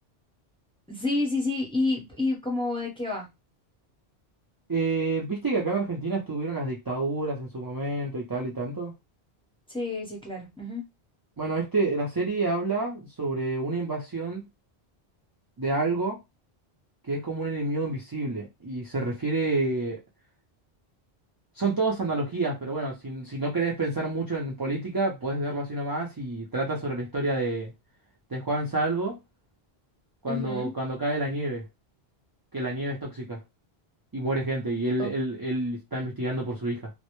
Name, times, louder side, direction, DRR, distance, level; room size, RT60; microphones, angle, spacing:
voice 1, 0.9-3.3 9.7-10.8 30.3-30.7 35.0-35.1, left 2 dB, 5° left, 0.7 m, -29 dB
voice 2, 4.7-8.9 11.4-14.4 15.6-16.2 17.1-20.0 21.6-27.7 28.3-29.2 30.2-31.6 32.5-33.4 34.1-36.9, right 2 dB, 35° right, 0.4 m, -28 dB
2.0 x 2.0 x 2.9 m
omnidirectional pair, 1.1 m